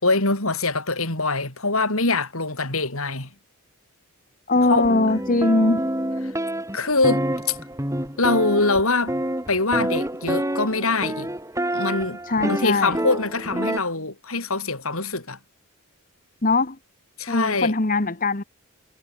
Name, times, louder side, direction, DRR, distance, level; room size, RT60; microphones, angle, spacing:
voice 1, 0.0-3.3 4.7-4.9 6.7-7.6 8.2-9.1 9.5-11.3 11.7-15.4 17.2-17.7, left 3 dB, 70° left, 6.2 m, -23 dB
voice 2, 4.5-5.8 12.3-13.0 16.4-16.8 17.3-18.4, left 2 dB, 35° left, 1.4 m, -21 dB
sound 1, 4.5-13.8, right 1 dB, 15° right, 5.7 m, -28 dB
head